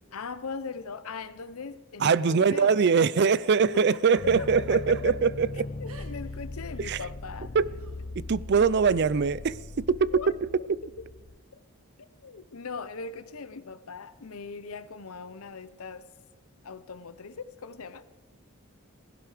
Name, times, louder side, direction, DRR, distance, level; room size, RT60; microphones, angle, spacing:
voice 1, 0.1-3.4 3.6-5.2 5.8-7.5 10.1-10.3 12.0-16.0 16.6-18.1, left 4 dB, 80° left, 0.8 m, -39 dB
voice 2, 2.0-5.5 6.8-7.0 7.5-7.7 8.2-10.8, right 5 dB, 50° right, 0.4 m, -23 dB
Giggle, 3.7-5.0 5.9-6.4 6.6-6.9 7.8-8.0, right 3 dB, 85° right, 1.8 m, -48 dB
sound 1, 4.2-11.4, left 2 dB, 40° left, 0.5 m, -40 dB
16.5 x 15.5 x 4.9 m
head